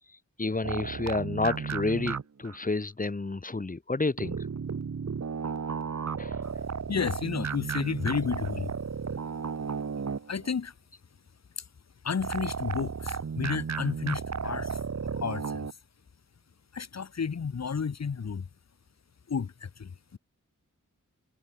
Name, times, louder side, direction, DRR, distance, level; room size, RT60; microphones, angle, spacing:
voice 1, 0.4-4.4 6.2-6.4, left 3 dB, 25° left, 1.5 m, -30 dB
sound 1, 0.6-2.6 4.2-10.6 12.2-15.7, right 6 dB, 60° right, 1.8 m, -34 dB
voice 2, 6.9-8.7 10.2-10.7 11.6-11.7 12.0-14.8 15.1-15.8 16.7-18.5 19.3-20.2, left 6 dB, 60° left, 1.6 m, -32 dB
wide cardioid pair, 120°, 30 cm